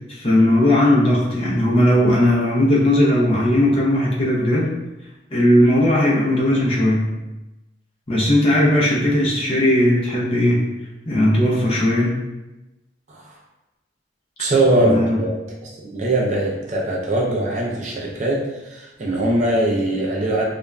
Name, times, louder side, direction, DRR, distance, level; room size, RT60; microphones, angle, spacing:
voice 1, 0.1-4.7 5.3-7.2 8.1-10.6 11.1-12.2 14.8-15.2, left 1 dB, 30° left, -5 dB, 0.5 m, -17 dB
voice 2, 14.4-15.3 15.6-20.4, right 1 dB, 40° right, -2 dB, 0.4 m, -21 dB
2.4 x 2.1 x 3.1 m, 1.0 s
head